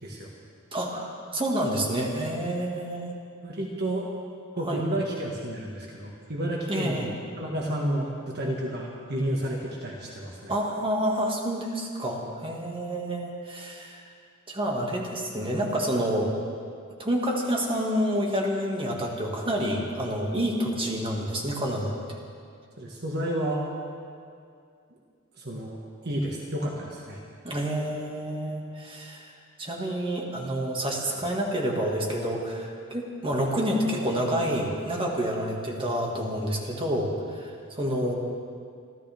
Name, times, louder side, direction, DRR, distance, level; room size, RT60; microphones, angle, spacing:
voice 1, 0.7-3.1 4.6-4.8 6.7-7.1 10.5-14.0 14.5-16.3 17.0-21.9 27.4-29.3 29.6-38.1, equal, 25° right, -1 dB, 2.0 m, -28 dB
voice 2, 3.4-4.1 4.6-7.1 7.4-10.5 22.8-23.6 25.4-25.8 26.0-27.2, right 1 dB, 50° right, -2 dB, 1.7 m, -31 dB
27.5 x 13.5 x 3.6 m, 2.3 s
head